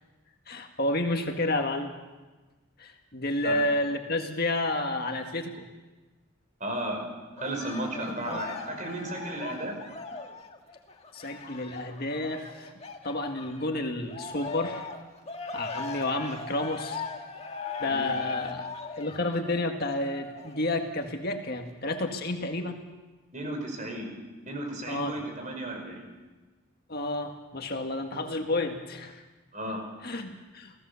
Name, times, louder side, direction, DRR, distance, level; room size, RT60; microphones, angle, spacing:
voice 1, 0.5-1.9 2.8-5.7 8.1-8.4 11.1-12.7 13.0-14.9 15.5-17.0 17.8-18.7 19.0-22.8 24.9-25.2 26.9-29.2 29.7-30.7, left 2 dB, 45° left, 4 dB, 1.8 m, -30 dB
voice 2, 6.6-7.0 7.4-9.8 17.9-18.1 23.3-24.1 24.5-26.1 29.5-29.8, right 1 dB, 35° right, 3 dB, 5.4 m, -34 dB
Cheering, 7.4-13.7 14.1-20.7 21.3-21.4, left 4 dB, 30° left, 1.7 m, -39 dB
29.5 x 17.0 x 7.1 m, 1.2 s
head